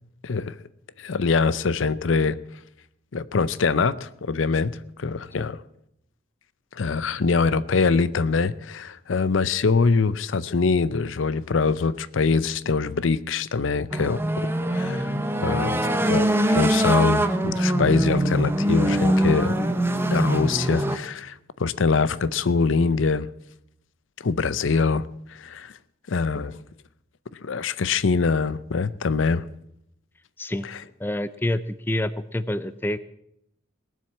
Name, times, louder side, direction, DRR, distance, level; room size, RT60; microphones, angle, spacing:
voice 1, 0.2-0.5 1.0-2.4 3.1-5.6 6.7-15.1 15.4-19.6 20.1-23.3 24.2-25.7 26.1-26.6 27.4-29.5 30.6-30.8, left 4 dB, 75° left, 17 dB, 0.6 m, -24 dB
sound 1, 13.9-21.0, right 1 dB, 10° right, 0.8 m, -23 dB
voice 2, 31.0-31.6 31.9-33.0, left 1 dB, 10° left, 14 dB, 0.4 m, -27 dB
19.0 x 7.6 x 7.3 m, 0.75 s
head